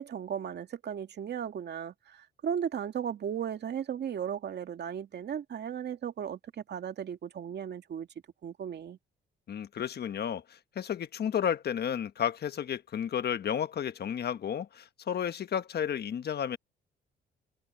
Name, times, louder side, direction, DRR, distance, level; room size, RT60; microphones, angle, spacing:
voice 1, 0.0-8.1 8.4-9.0, right 8 dB, 60° right, 2.2 m, -36 dB
voice 2, 9.5-16.6, left 8 dB, 55° left, 1.3 m, -32 dB
cardioid pair, 90°, 20 cm